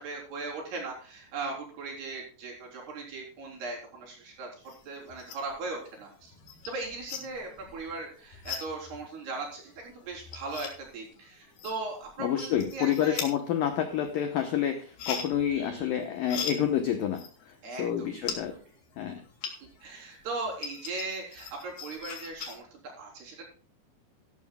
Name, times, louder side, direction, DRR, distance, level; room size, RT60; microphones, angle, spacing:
voice 1, 0.0-4.5 4.9-6.3 6.7-13.2 15.5-16.0 17.6-18.6 19.8-23.5, right 3 dB, 60° right, -1 dB, 5.6 m, -38 dB
sound 1, 4.6-5.6 6.0-19.9 20.2-22.6, left 6 dB, 60° left, 3.8 m, -41 dB
voice 2, 12.2-18.6 19.0-19.2, left 9 dB, 80° left, 6 dB, 2.0 m, -29 dB
15.0 x 12.5 x 2.3 m, 0.40 s
omnidirectional pair, 5.4 m